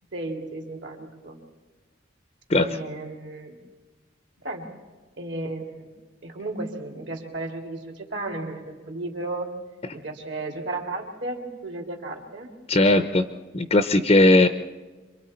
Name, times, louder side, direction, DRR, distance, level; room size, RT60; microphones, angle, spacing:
voice 1, 0.1-1.4 2.6-3.5 4.4-4.7 5.2-5.8 6.2-9.5 9.9-12.5, right 2 dB, 60° right, 1 dB, 3.0 m, -34 dB
voice 2, 12.7-13.2 13.5-14.5, left 2 dB, 30° left, 9 dB, 0.6 m, -18 dB
27.0 x 23.5 x 4.4 m, 1.3 s
head